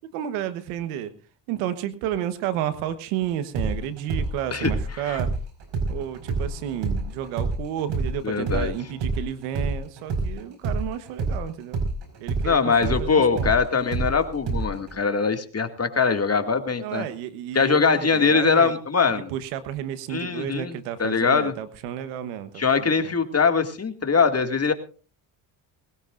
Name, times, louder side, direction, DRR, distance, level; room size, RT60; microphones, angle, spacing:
voice 1, 0.1-1.1 1.5-5.3 5.9-11.8 12.2-13.5 16.8-18.7 19.3-23.1, right 10 dB, 85° right, 12 dB, 1.4 m, -31 dB
sound 1, 3.5-11.4 11.7-15.0, right 3 dB, 60° right, 5.2 m, -28 dB
voice 2, 4.5-5.2 8.2-8.7 12.4-17.1 17.5-19.3 20.1-21.5 22.6-24.7, left 5 dB, 30° left, 7 dB, 2.3 m, -22 dB
20.5 x 18.0 x 2.6 m, 0.36 s
supercardioid pair, 65°, 48 cm